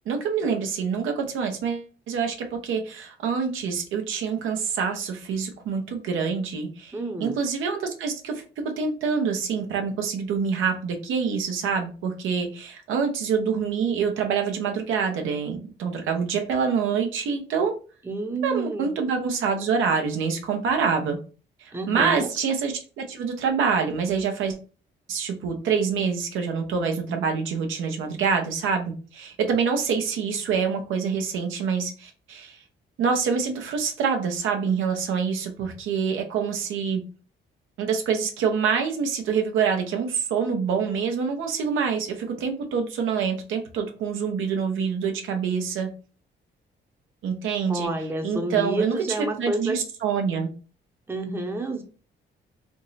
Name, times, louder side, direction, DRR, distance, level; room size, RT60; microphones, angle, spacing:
voice 1, 0.1-17.7 18.4-21.2 21.6-24.6 25.1-32.6 33.0-37.0 37.8-45.9 47.2-47.9 48.2-50.5, right 6 dB, 80° right, 4 dB, 0.8 m, -26 dB
voice 2, 6.9-7.4 18.0-18.9 21.7-22.3 47.7-49.8 51.1-51.8, right 2 dB, 10° right, 4 dB, 0.7 m, -29 dB
3.5 x 2.0 x 4.0 m, 0.36 s
cardioid pair, 90°, 20 cm